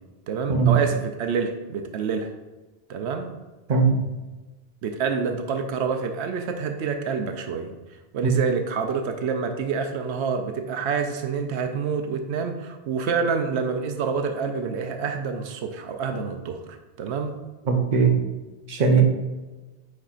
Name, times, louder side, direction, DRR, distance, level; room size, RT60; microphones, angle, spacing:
voice 1, 0.3-2.3 2.9-3.3 4.8-7.7 8.1-17.4, right 5 dB, 85° right, 6 dB, 0.9 m, -27 dB
voice 2, 3.7-4.0 17.7-18.1 18.7-19.0, right 5 dB, 45° right, 2 dB, 0.9 m, -19 dB
9.3 x 4.4 x 2.4 m, 1.2 s
omnidirectional pair, 1.1 m